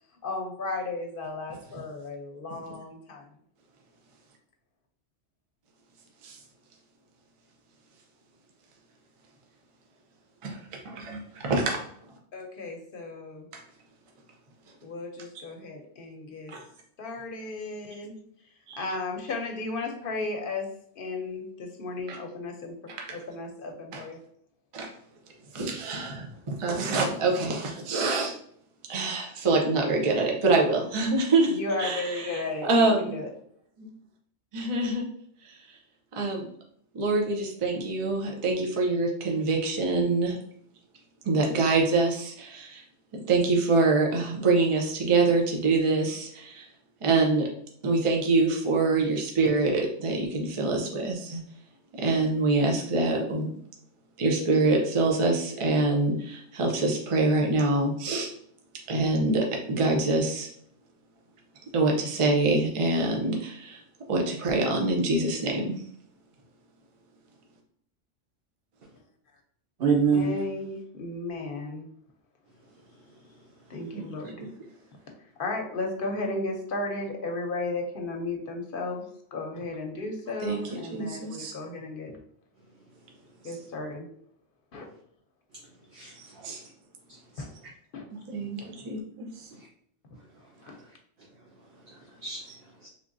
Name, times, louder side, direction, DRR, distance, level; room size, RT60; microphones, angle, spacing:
voice 1, 0.2-3.3 12.3-13.4 14.8-16.5 17.0-18.1 18.7-20.7 21.0-24.2 31.5-33.3 70.1-71.9 73.7-74.3 75.4-79.0 79.3-82.1 83.4-84.1 84.7-84.9 87.4-87.5 87.9-88.0 90.7-90.8, left 2 dB, 55° left, 2 dB, 0.7 m, -34 dB
voice 2, 10.4-11.8 13.5-13.6 14.7-14.8 15.3-15.4 16.5-16.7 18.7-18.9 22.1-22.2 22.9-23.2 23.9-24.1 24.7-24.9 25.4-28.4 28.8-33.2 33.8-33.9 34.5-35.1 35.4-35.8 36.1-36.5 36.9-40.4 41.2-42.9 43.1-47.5 47.8-51.6 51.9-53.5 54.2-58.3 58.9-60.5 61.7-65.9 73.9-74.1 74.4-74.6 80.4-81.5 83.4-83.6 86.1-86.6 88.1-88.6 88.8-89.0, right 3 dB, 35° right, 0 dB, 0.6 m, -26 dB
voice 3, 69.8-70.5 72.5-73.7 82.6-83.4 84.7-85.0 85.5-86.7 87.1-87.7 90.1-92.9, right 5 dB, 60° right, -3 dB, 0.9 m, -32 dB
3.6 x 3.1 x 2.6 m, 0.64 s
omnidirectional pair, 1.2 m